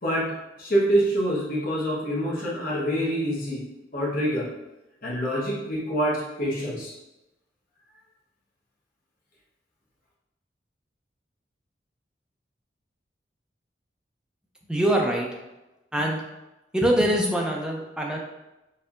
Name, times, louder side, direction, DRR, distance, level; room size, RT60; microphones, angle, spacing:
voice 1, 0.0-0.3 0.6-3.6 3.9-4.5 5.0-6.9, right 1 dB, 55° left, -6 dB, 1.0 m, -26 dB
voice 2, 14.7-15.3 15.9-16.2 16.7-18.2, right 1 dB, 5° right, -1 dB, 0.5 m, -23 dB
4.2 x 2.7 x 2.5 m, 0.97 s
head